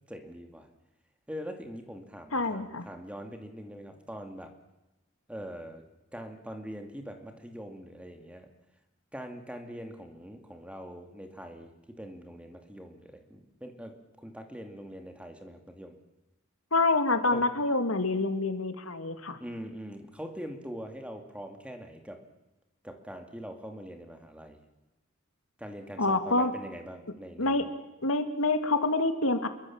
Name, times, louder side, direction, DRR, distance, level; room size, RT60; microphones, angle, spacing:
voice 1, 0.1-0.7 1.3-4.5 5.3-5.8 6.1-8.5 9.1-16.0 17.3-17.4 19.4-22.2 22.8-24.6 25.6-27.7, equal, 5° right, 5 dB, 2.4 m, -43 dB
voice 2, 2.3-2.9 16.7-19.4 26.0-26.5 27.4-27.7 28.0-29.5, left 2 dB, 75° left, 8 dB, 2.3 m, -27 dB
28.0 x 23.0 x 7.3 m, 1.0 s
head